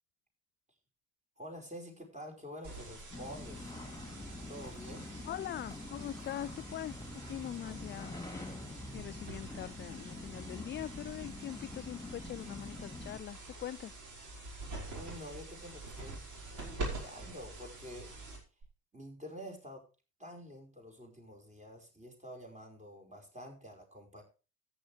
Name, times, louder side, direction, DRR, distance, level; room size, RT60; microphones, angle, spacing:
voice 1, 1.4-3.7 4.5-5.1 14.5-14.6 14.9-16.2 16.6-18.1 18.9-19.8 20.2-24.2, equal, 15° right, 5.2 m, -48 dB
sound 1, 2.6-18.6, right 2 dB, 45° right, 5.6 m, -46 dB
sound 2, 3.1-13.2, left 2 dB, 10° left, 3.2 m, -46 dB
voice 2, 5.2-8.2 8.9-14.0, left 11 dB, 25° left, 0.5 m, -42 dB
13.5 x 9.7 x 3.4 m
figure-of-eight pair, 60°, 43 cm